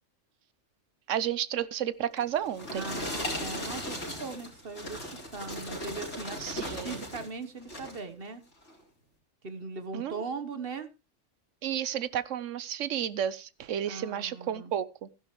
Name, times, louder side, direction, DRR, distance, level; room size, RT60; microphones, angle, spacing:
voice 1, 1.1-2.9 6.4-7.0 9.9-10.2 11.6-15.1, right 10 dB, 85° right, 1.1 m, -32 dB
sound 1, 2.2-7.3 7.6-8.0 8.6-8.8, equal, 70° left, 4.5 m, -37 dB
voice 2, 2.7-5.1 5.3-6.4 6.8-8.4 9.4-10.9 13.8-14.7, right 4 dB, 50° right, 1.3 m, -39 dB
15.0 x 10.5 x 3.1 m
omnidirectional pair, 1.2 m